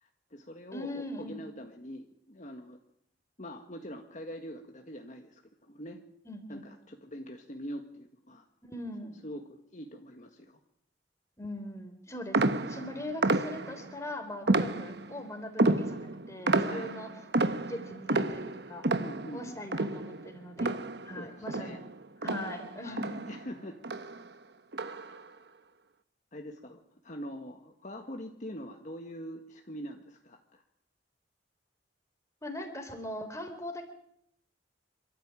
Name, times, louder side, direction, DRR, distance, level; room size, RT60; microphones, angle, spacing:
voice 1, 0.0-2.8 3.4-5.4 5.7-6.0 6.5-8.4 9.2-10.6 12.9-13.0 16.6-16.9 19.0-19.7 21.1-21.8 22.8-23.8 24.9-25.2 26.3-30.6, equal, 40° left, 3 dB, 1.8 m, -44 dB
voice 2, 0.7-1.4 6.3-6.6 8.6-9.2 11.4-17.1 17.5-18.9 19.3-20.8 21.0-21.8 22.2-23.2 32.4-33.9, left 1 dB, 15° left, 5 dB, 3.8 m, -41 dB
sound 1, 12.3-13.9 14.5-15.2 15.6-21.2 21.5-23.5 23.8-24.2 24.7-25.2, right 2 dB, 65° right, 1.2 m, -30 dB
27.5 x 13.5 x 9.1 m, 0.71 s
head